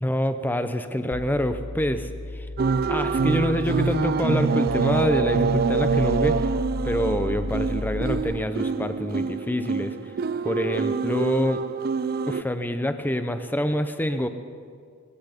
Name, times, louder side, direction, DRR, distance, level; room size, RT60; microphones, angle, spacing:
voice 1, 0.0-2.1 2.9-6.5 6.8-9.9 10.4-11.6 12.3-14.3, equal, 10° left, 9 dB, 0.7 m, -26 dB
sound 1, 1.1-8.2, left 1 dB, 40° left, 1.0 m, -33 dB
sound 2, 2.6-12.4, right 5 dB, 45° right, 0.4 m, -25 dB
18.5 x 14.0 x 5.2 m, 2.2 s
head